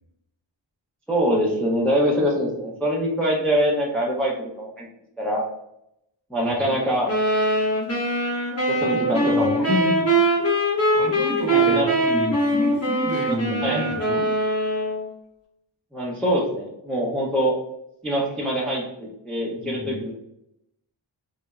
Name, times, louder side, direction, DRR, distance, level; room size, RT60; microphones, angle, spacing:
voice 1, 1.1-4.9 5.2-5.5 6.3-7.1 8.7-9.9 11.5-11.9 13.3-13.4 13.6-13.8 15.9-17.5 18.0-20.1, equal, ahead, -3 dB, 0.5 m, -24 dB
voice 2, 6.4-6.7 8.8-10.0 10.9-14.3 19.6-20.1, right 1 dB, 45° right, -2 dB, 0.9 m, -30 dB
sound 1, 7.1-15.1, right 1 dB, 30° left, 0.8 m, -22 dB
2.9 x 2.0 x 2.3 m, 0.81 s
wide cardioid pair, 65°, 47 cm